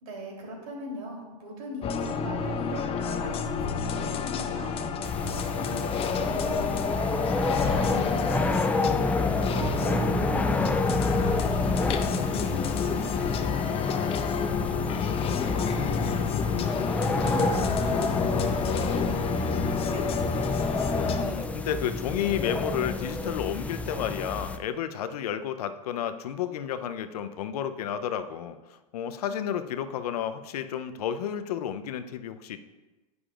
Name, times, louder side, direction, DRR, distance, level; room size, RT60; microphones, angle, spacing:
voice 1, 0.0-7.5 7.8-20.4, equal, 70° right, 0 dB, 3.2 m, -41 dB
sound 1, 1.8-21.2, left 6 dB, 30° left, 0.8 m, -29 dB
sound 2, 5.0-24.6, left 2 dB, 5° left, 0.3 m, -29 dB
voice 2, 7.7-8.4 21.2-32.6, left 9 dB, 70° left, 10 dB, 0.7 m, -32 dB
10.5 x 9.6 x 2.5 m, 1.1 s
hypercardioid pair, 105°, 20 cm